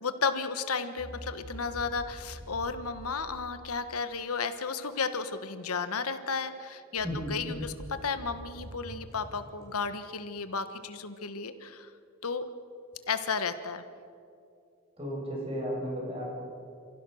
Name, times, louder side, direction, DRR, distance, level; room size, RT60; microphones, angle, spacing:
voice 1, 0.0-11.9 12.2-12.5 13.1-13.8, left 5 dB, 90° left, 10 dB, 1.3 m, -33 dB
sound 1, 1.0-4.0 7.0-10.4, equal, 50° right, 7.7 m, -46 dB
voice 2, 7.0-7.4 15.0-16.2, equal, 25° right, -3 dB, 6.3 m, -34 dB
29.0 x 16.0 x 6.4 m, 2.5 s
head